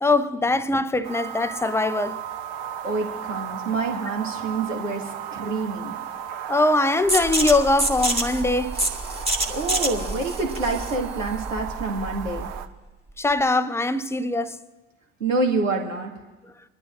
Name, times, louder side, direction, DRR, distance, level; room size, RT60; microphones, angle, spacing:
voice 1, 0.0-2.2 6.5-8.8 13.2-14.6, left 2 dB, 5° left, 0.5 m, -22 dB
sound 1, 1.0-12.7, right 9 dB, 50° right, 1.0 m, -35 dB
voice 2, 2.8-6.0 9.4-12.5 15.2-16.1, right 3 dB, 80° right, 2.0 m, -27 dB
sound 2, 7.1-12.6, right 1 dB, 15° right, 2.0 m, -27 dB
24.0 x 11.5 x 2.6 m
figure-of-eight pair, 70°, 38 cm